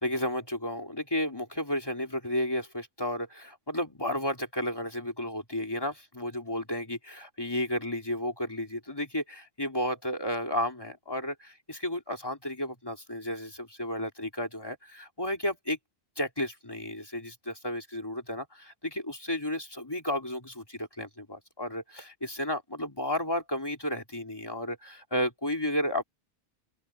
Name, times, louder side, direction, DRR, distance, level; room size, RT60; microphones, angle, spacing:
voice 1, 0.0-15.8 16.2-26.0, left 1 dB, 20° left, 2.9 m, -33 dB
open air
omnidirectional pair, 1.1 m